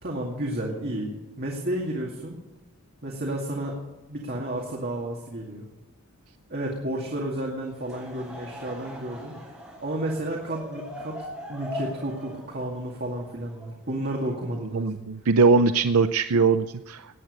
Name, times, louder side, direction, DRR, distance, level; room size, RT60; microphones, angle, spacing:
voice 1, 0.0-2.4 3.0-3.8 4.1-5.7 6.5-9.4 9.8-11.2 11.5-15.0, right 1 dB, 45° right, -1 dB, 2.2 m, -31 dB
Laughter / Crowd, 7.7-14.1, left 1 dB, 5° right, 6.7 m, -41 dB
voice 2, 14.7-17.2, right 4 dB, 75° right, 10 dB, 0.5 m, -21 dB
18.5 x 8.9 x 6.5 m, 1.1 s
head